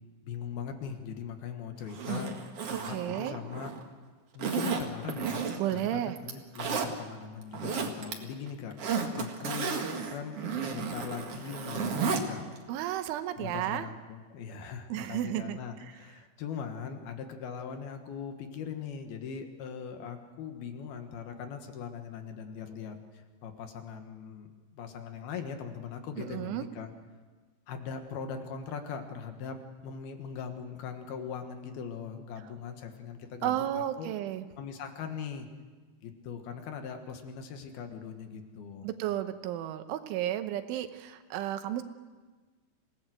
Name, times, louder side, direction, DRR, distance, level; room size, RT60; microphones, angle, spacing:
voice 1, 0.2-2.4 2.6-3.7 4.3-5.4 5.7-12.4 13.4-24.5 24.7-26.9 27.7-34.1 34.6-35.5 36.0-38.9, left 7 dB, 65° left, 6 dB, 2.9 m, -40 dB
Zipper (clothing), 1.9-3.8 4.4-5.8 6.2-6.9 7.4-8.1 8.5-12.2 12.6-12.7, right 5 dB, 60° right, 1.6 m, -33 dB
voice 2, 2.7-3.4 5.6-6.2 12.7-13.9 14.9-15.9 26.2-26.7 33.4-34.5 38.8-41.8, right 12 dB, 80° right, 9 dB, 3.4 m, -33 dB
26.5 x 18.0 x 7.8 m, 1.4 s
omnidirectional pair, 5.6 m